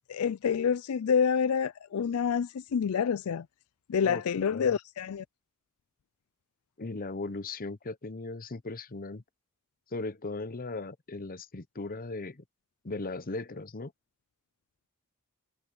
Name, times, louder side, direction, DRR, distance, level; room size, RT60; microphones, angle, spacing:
voice 1, 0.1-3.5 3.9-5.2, left 7 dB, 70° left, 0.4 m, -28 dB
voice 2, 4.0-4.7 6.8-9.2 9.9-12.4 12.8-13.9, left 3 dB, 40° left, 0.9 m, -38 dB
head